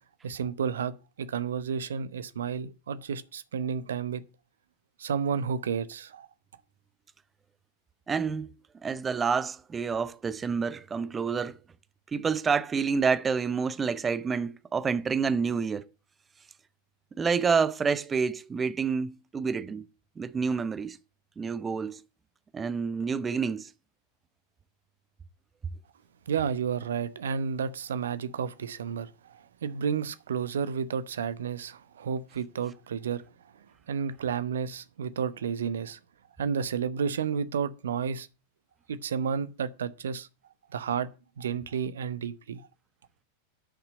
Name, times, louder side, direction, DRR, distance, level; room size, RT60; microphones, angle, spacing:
voice 1, 0.2-4.2 5.0-6.3 26.3-33.2 33.9-36.0 36.4-38.3 38.9-40.3 40.7-41.1 41.4-42.7, right 7 dB, 65° right, 0.9 m, -31 dB
voice 2, 8.1-8.5 8.8-11.5 12.1-15.8 17.2-19.8 20.2-21.0 21.4-22.0 22.5-23.7, right 5 dB, 20° right, 0.7 m, -28 dB
10.0 x 5.9 x 7.7 m
figure-of-eight pair, 90°, 0 cm